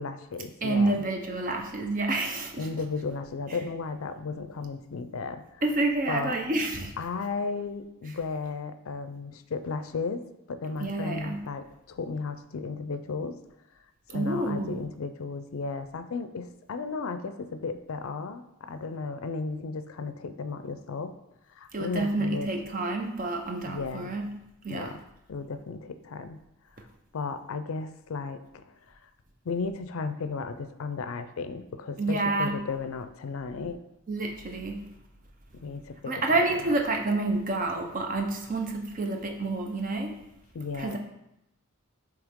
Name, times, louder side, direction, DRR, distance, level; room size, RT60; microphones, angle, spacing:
voice 1, 0.0-1.0 2.6-5.4 6.1-6.4 7.0-10.2 10.5-13.4 14.1-21.1 21.5-22.5 23.6-24.1 24.7-25.0 25.3-26.4 27.1-29.0 29.5-33.8 35.5-36.4 40.5-41.0, left 4 dB, 75° left, 10 dB, 0.4 m, -34 dB
voice 2, 0.6-2.7 5.6-6.9 10.8-11.4 14.1-14.8 21.7-24.3 24.6-24.9 32.0-32.6 34.1-34.9 36.1-40.2 40.7-41.0, right 2 dB, 40° right, 3 dB, 0.7 m, -28 dB
8.2 x 3.3 x 3.6 m, 0.85 s
head